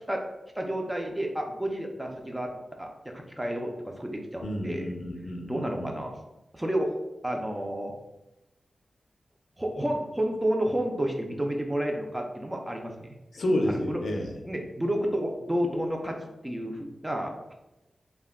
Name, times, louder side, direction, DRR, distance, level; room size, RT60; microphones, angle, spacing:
voice 1, 0.6-2.5 2.8-4.9 5.5-6.1 6.5-6.9 7.2-7.9 9.6-13.1 13.7-14.0 14.3-16.2 16.4-17.5, right 1 dB, 10° right, 2 dB, 0.3 m, -30 dB
voice 2, 4.4-6.0 13.3-14.3, left 1 dB, 70° left, 2 dB, 0.4 m, -30 dB
2.2 x 2.1 x 3.3 m, 0.95 s
wide cardioid pair, 130°, 0 cm